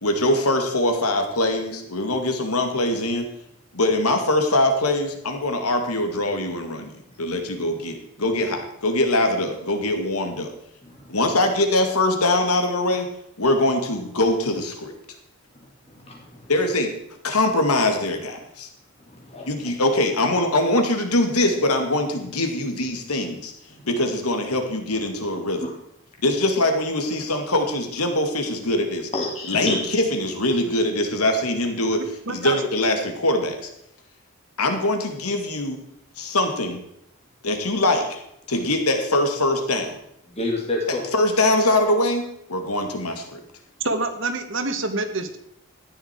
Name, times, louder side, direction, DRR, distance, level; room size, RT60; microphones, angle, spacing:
voice 1, 0.0-3.3 3.7-10.5 11.1-13.1 13.4-14.9 16.5-16.9 17.2-18.7 19.5-23.5 23.8-25.7 26.2-29.1 29.5-33.7 34.6-35.8 36.2-36.8 37.4-38.2 38.5-40.0 41.1-43.4, left 1 dB, 90° left, 5 dB, 2.2 m, -23 dB
voice 2, 16.0-16.4 19.0-19.5 25.6-25.7 29.1-29.8 40.3-41.0, left 2 dB, 30° left, -2 dB, 2.3 m, -28 dB
voice 3, 31.9-32.6 43.8-45.4, right 2 dB, 55° right, 8 dB, 1.3 m, -27 dB
14.0 x 10.0 x 4.5 m, 0.77 s
head